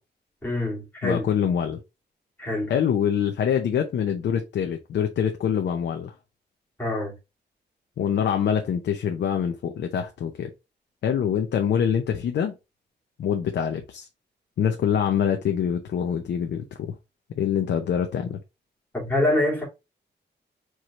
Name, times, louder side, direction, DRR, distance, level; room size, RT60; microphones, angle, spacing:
voice 1, 0.4-1.3 2.4-2.7 6.8-7.1 18.9-19.6, left 1 dB, 10° left, 2.7 m, -25 dB
voice 2, 1.0-1.8 2.7-6.1 8.0-10.5 11.0-12.5 13.2-14.1 14.6-16.9 17.4-18.4, left 8 dB, 75° left, 0.7 m, -25 dB
4.8 x 4.4 x 2.5 m
wide cardioid pair, 160°, 18 cm